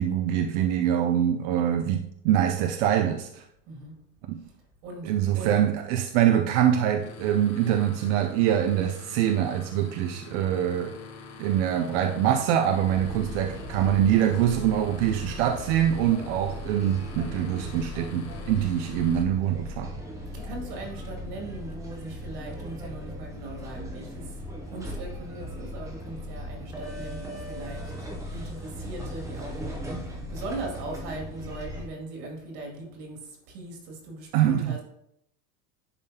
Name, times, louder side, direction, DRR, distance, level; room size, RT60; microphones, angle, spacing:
voice 1, 0.0-3.4 4.3-4.4 5.0-11.0 11.4-19.9 34.3-34.8, right 10 dB, 50° right, 0.5 m, -24 dB
voice 2, 3.7-4.0 4.4-5.6 20.3-28.0 28.3-34.8, right 2 dB, 65° right, 2.4 m, -40 dB
sound 1, 7.0-19.2, left 4 dB, 55° left, 1.5 m, -45 dB
sound 2, 12.8-31.9, equal, 5° right, 0.7 m, -38 dB
10.5 x 3.6 x 2.8 m
supercardioid pair, 130°, 49 cm